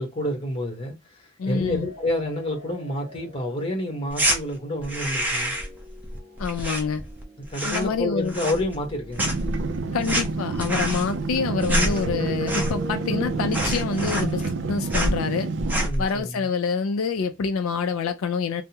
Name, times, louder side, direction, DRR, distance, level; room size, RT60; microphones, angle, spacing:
voice 1, 0.0-5.5 7.5-9.3 15.8-16.5, left 1 dB, 25° left, 1.0 m, -29 dB
voice 2, 1.4-1.9 6.4-7.0 7.6-8.4 9.9-15.5 16.0-18.6, left 5 dB, 75° left, 0.4 m, -26 dB
sound 1, 1.4-15.1, equal, 25° right, 1.7 m, -43 dB
sound 2, 4.1-4.4 4.8-5.8 6.0-7.2 7.5-8.0 8.3-8.9 9.2-12.9 13.2-13.3 13.5-14.6 14.9-15.2 15.6-16.0, right 1 dB, 10° right, 0.6 m, -27 dB
sound 3, 9.2-15.9, right 3 dB, 55° right, 0.4 m, -29 dB
3.4 x 2.0 x 2.7 m
head